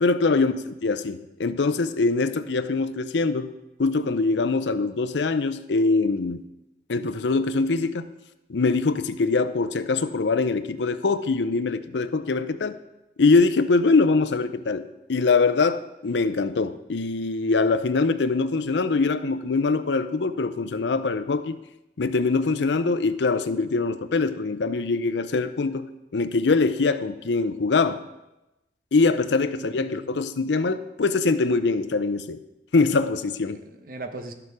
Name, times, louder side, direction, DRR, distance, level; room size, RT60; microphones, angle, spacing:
voice 1, 0.0-3.5 3.8-6.4 6.9-8.1 8.5-12.7 13.2-21.6 22.0-28.0 28.9-32.4 32.7-33.6, left 3 dB, 80° left, 12 dB, 0.6 m, -23 dB
voice 2, 29.5-30.2 33.5-34.3, right 2 dB, 50° right, 7 dB, 0.9 m, -40 dB
12.0 x 6.7 x 4.8 m, 0.94 s
head